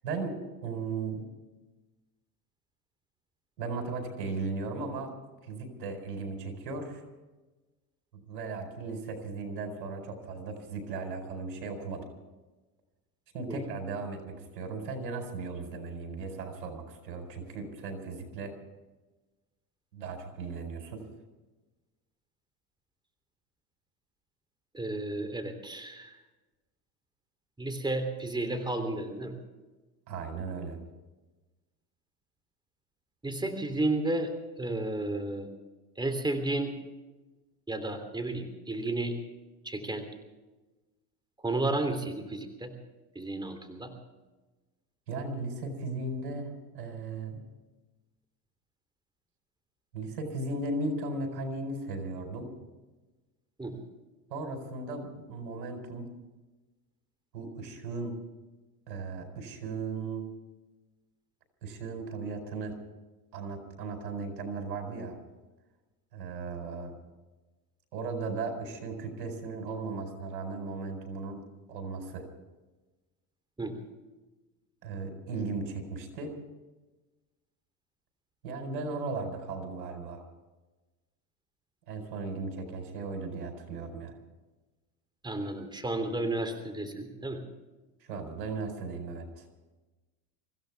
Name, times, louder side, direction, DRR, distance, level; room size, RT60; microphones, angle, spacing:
voice 1, 0.0-1.2 3.6-5.1 5.4-7.0 8.1-12.0 13.3-18.5 19.9-21.0 30.1-30.8 45.1-47.4 49.9-52.5 54.3-56.1 57.3-58.2 58.9-60.2 61.6-62.8 63.3-65.2 66.1-66.9 67.9-72.2 74.8-76.3 78.4-80.2 81.9-84.1 88.1-89.4, right 3 dB, 85° right, 5 dB, 4.7 m, -36 dB
voice 2, 24.7-26.2 27.6-29.3 33.2-34.3 34.6-35.5 36.0-36.7 37.7-39.2 39.6-40.1 41.4-42.7 43.1-43.9 53.6-53.8 73.6-73.8 85.2-87.4, right 2 dB, 10° right, 7 dB, 3.2 m, -32 dB
25.5 x 16.0 x 3.6 m, 1.2 s
supercardioid pair, 95°, 50 cm